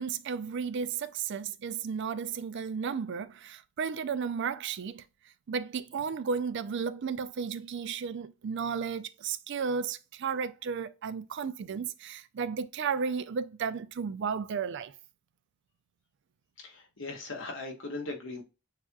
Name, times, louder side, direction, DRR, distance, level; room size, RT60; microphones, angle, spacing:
voice 1, 0.0-5.0 5.5-14.9, right 6 dB, 55° right, 0.4 m, -33 dB
voice 2, 16.6-18.4, left 2 dB, 65° left, 1.3 m, -39 dB
6.5 x 2.9 x 2.3 m
head